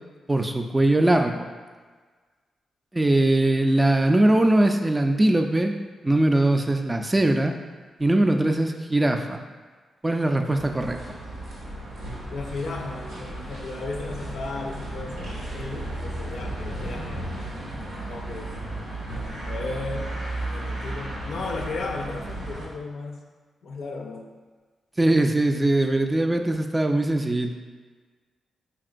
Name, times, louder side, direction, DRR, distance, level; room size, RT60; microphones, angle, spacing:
voice 1, 0.3-1.5 2.9-5.7 6.0-7.5 8.0-9.4 10.0-11.0 25.0-27.5, right 1 dB, 25° right, 5 dB, 0.4 m, -21 dB
sound 1, 10.6-22.7, right 1 dB, 85° right, 0.8 m, -34 dB
voice 2, 12.3-17.3 18.1-18.5 19.5-20.1 20.5-23.2 23.6-24.3, left 3 dB, 70° left, 2 dB, 0.4 m, -35 dB
4.3 x 2.8 x 2.5 m, 1.4 s
supercardioid pair, 40°, 0 cm